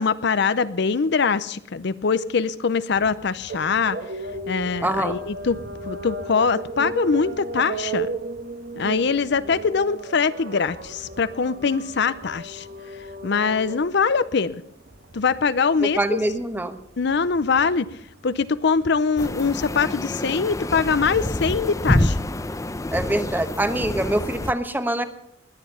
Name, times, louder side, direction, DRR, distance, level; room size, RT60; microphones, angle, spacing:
voice 1, 0.0-4.0 4.5-5.6 5.8-8.1 8.8-12.7 13.2-14.6 15.1-16.2 17.0-17.9 18.2-22.2, left 5 dB, 60° left, 15 dB, 0.6 m, -23 dB
sound 1, 2.9-19.0, right 3 dB, 55° right, 1.3 m, -36 dB
voice 2, 4.8-5.2 15.8-16.8 22.9-25.0, right 1 dB, 10° right, 9 dB, 1.1 m, -24 dB
sound 2, 19.2-24.5, left 1 dB, 15° left, 0.6 m, -27 dB
21.0 x 9.2 x 5.6 m, 0.77 s
head